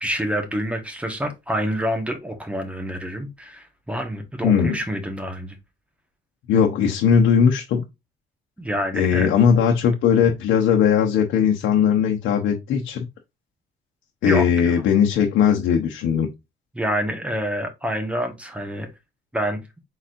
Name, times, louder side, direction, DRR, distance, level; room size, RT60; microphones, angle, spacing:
voice 1, 0.0-5.6 8.6-9.3 14.2-14.7 16.7-18.9 19.3-19.6, equal, 5° right, 1.2 m, -27 dB
voice 2, 4.4-4.7 6.5-7.8 8.9-13.1 14.2-16.3, left 7 dB, 90° left, 0.9 m, -19 dB
4.7 x 4.1 x 2.5 m
cardioid pair, 135°, 20 cm